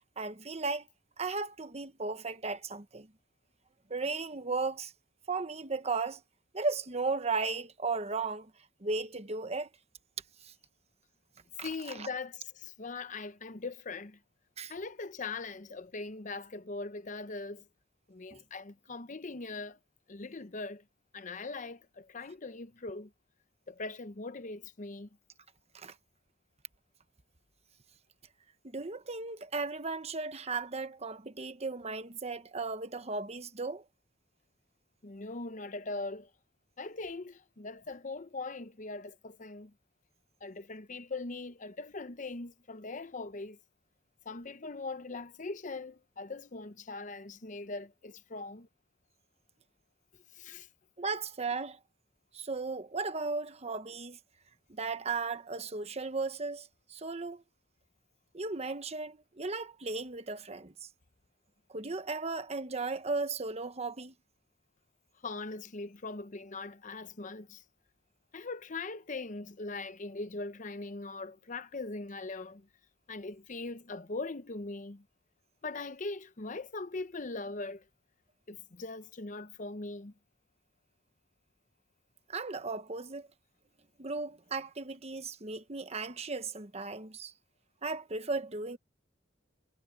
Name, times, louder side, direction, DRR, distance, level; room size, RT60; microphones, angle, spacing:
voice 1, 0.2-0.9 1.2-3.1 3.9-4.9 5.3-6.2 6.5-8.5 8.8-9.7 10.4-10.5 11.6-11.7 12.0-12.1 14.6-14.7 18.3-18.4 25.7-25.9 28.6-33.8 51.0-51.8 52.3-54.2 54.7-57.4 58.3-60.9 61.7-64.1 82.3-83.3 84.0-87.3 87.8-88.8, right 4 dB, 35° right, 1.1 m, -36 dB
voice 2, 11.6-14.2 14.7-17.6 18.1-19.8 20.1-20.8 21.1-23.1 23.7-25.1 35.0-36.3 36.8-39.7 40.4-43.6 44.2-48.7 50.3-50.7 65.2-67.6 68.3-72.7 73.1-75.0 75.6-77.9 78.5-80.1, left 3 dB, 40° left, 0.8 m, -41 dB
head